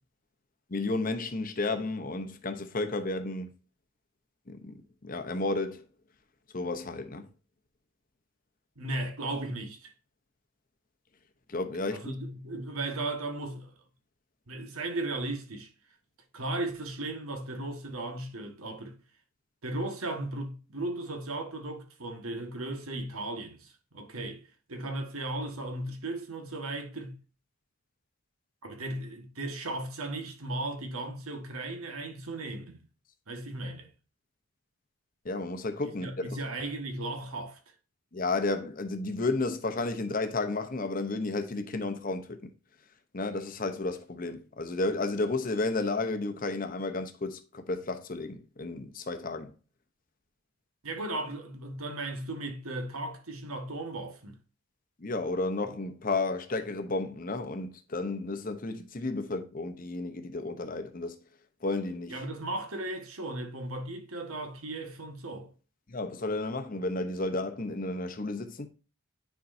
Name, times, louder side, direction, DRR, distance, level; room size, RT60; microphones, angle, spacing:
voice 1, 0.7-3.5 4.5-4.7 5.0-5.8 6.5-7.3 11.5-12.1 35.2-36.4 38.1-42.4 43.1-49.5 55.0-61.1 61.6-62.2 65.9-68.7, left 2 dB, 40° left, 0.8 m, -32 dB
voice 2, 8.8-9.9 11.9-13.8 14.5-15.7 16.3-18.9 19.6-24.4 24.7-27.2 28.6-32.8 33.3-33.9 35.8-37.6 50.8-54.4 62.1-65.5, right 2 dB, 85° right, 1.6 m, -36 dB
9.5 x 4.6 x 2.7 m
head